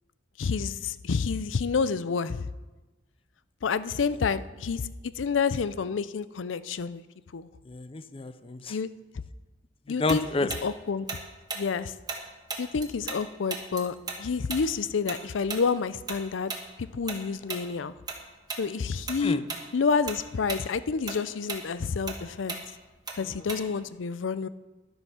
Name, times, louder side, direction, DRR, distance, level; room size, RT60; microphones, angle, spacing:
voice 1, 0.4-2.5 3.6-7.0 7.3-7.5 8.7-8.9 9.9-11.1 11.5-11.9 12.6-16.5 16.8-17.9 18.6-19.4 19.7-22.6 23.2-24.5, left 5 dB, 90° left, 15 dB, 0.5 m, -29 dB
voice 2, 7.6-8.8 10.0-10.5 19.2-19.5 23.2-23.5, left 3 dB, 30° left, 12 dB, 0.5 m, -30 dB
Tick-tock, 10.1-13.2 13.5-18.2 18.5-18.7 19.1-19.7 19.9-23.9, right 4 dB, 20° right, 1.3 m, -36 dB
11.5 x 8.0 x 5.7 m, 1.2 s
head